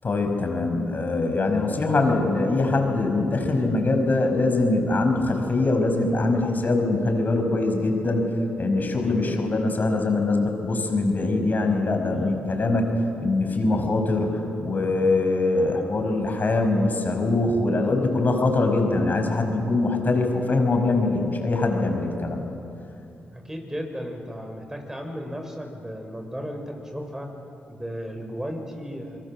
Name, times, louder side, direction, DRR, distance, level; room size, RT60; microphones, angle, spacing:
voice 1, 0.0-8.3 8.6-12.9 13.2-22.5, left 2 dB, 45° left, 4 dB, 5.5 m, -23 dB
voice 2, 9.0-9.4 12.1-12.4 23.3-27.3 27.7-29.2, equal, 10° right, 4 dB, 5.9 m, -35 dB
26.0 x 22.5 x 7.5 m, 2.7 s
hypercardioid pair, 45°, 4 cm